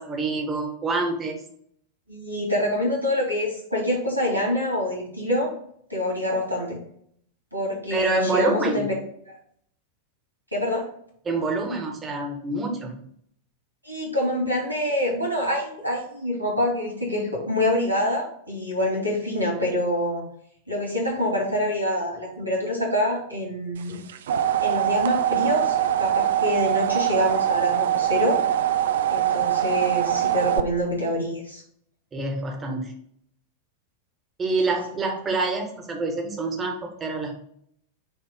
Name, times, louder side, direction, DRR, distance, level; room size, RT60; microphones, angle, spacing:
voice 1, 0.0-1.4 7.9-8.9 11.2-13.0 32.1-32.9 34.4-37.3, right 2 dB, 20° right, 2 dB, 1.3 m, -26 dB
voice 2, 2.1-5.5 5.9-6.8 7.5-8.9 9.3-9.4 10.5-10.8 13.8-20.2 20.7-24.0 24.6-28.4 29.1-31.6, left 1 dB, 90° left, -2 dB, 2.4 m, -26 dB
sound 1, 23.9-30.6, right 11 dB, 60° right, 0.4 m, -23 dB
6.2 x 3.0 x 5.1 m, 0.67 s
figure-of-eight pair, 90°, 0 cm